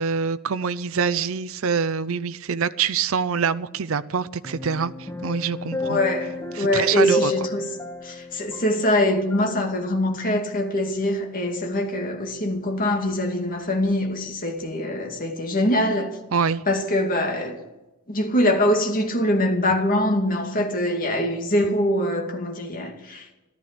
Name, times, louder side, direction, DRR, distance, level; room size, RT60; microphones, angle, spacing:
voice 1, 0.0-6.0 6.5-7.3 16.3-16.6, right 6 dB, 65° right, 0.5 m, -25 dB
sound 1, 4.4-9.9 10.2-10.4, left 3 dB, 10° left, 1.6 m, -32 dB
voice 2, 5.8-7.7 8.0-16.2 16.7-17.6 18.1-23.3, left 1 dB, 40° left, 2.4 m, -23 dB
14.5 x 12.5 x 6.8 m
head